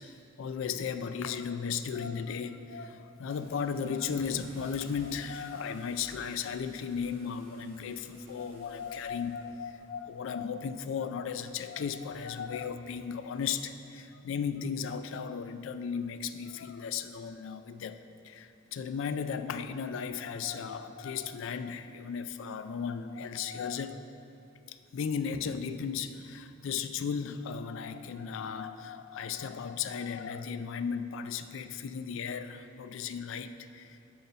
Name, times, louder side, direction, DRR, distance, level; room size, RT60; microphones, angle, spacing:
voice 1, 0.0-24.1 24.7-34.0, left 6 dB, 65° left, 10 dB, 0.3 m, -36 dB
Car / Engine starting, 2.9-9.9, right 1 dB, 30° right, 1.4 m, -56 dB
7.5 x 4.3 x 5.5 m, 2.7 s
head